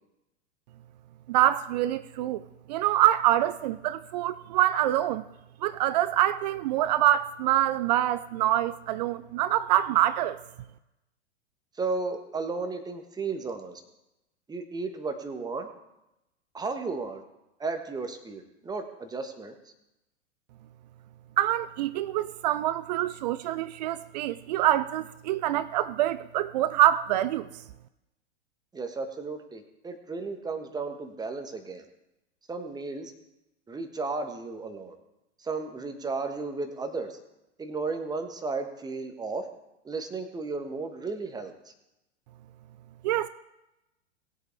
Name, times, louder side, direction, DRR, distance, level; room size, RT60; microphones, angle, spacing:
voice 1, 1.3-2.4 2.7-5.2 5.6-10.4 21.4-27.5 43.0-43.3, right 13 dB, 40° right, 0.5 m, -25 dB
voice 2, 11.8-13.8 14.5-15.7 16.5-17.2 17.6-19.5 28.7-31.8 32.5-33.1 33.7-34.9 35.4-37.2 37.6-39.5 39.8-41.5, right 4 dB, 10° right, 1.4 m, -34 dB
20.0 x 8.1 x 3.5 m
figure-of-eight pair, 100°, 34 cm